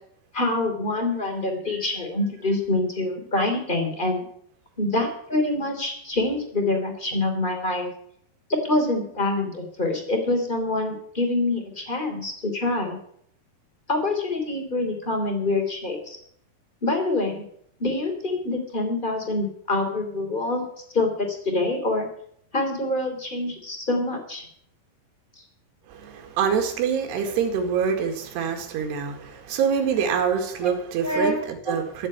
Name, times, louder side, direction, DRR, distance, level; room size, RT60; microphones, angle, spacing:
voice 1, 0.3-4.2 4.8-7.9 8.5-13.0 13.9-16.2 16.8-17.4 17.8-20.7 20.9-22.1 22.5-24.5 31.0-31.8, left 2 dB, 15° left, 3 dB, 2.3 m, -25 dB
voice 2, 25.9-32.1, right 7 dB, 80° right, 4 dB, 4.0 m, -25 dB
14.0 x 7.7 x 8.5 m, 0.67 s
omnidirectional pair, 4.8 m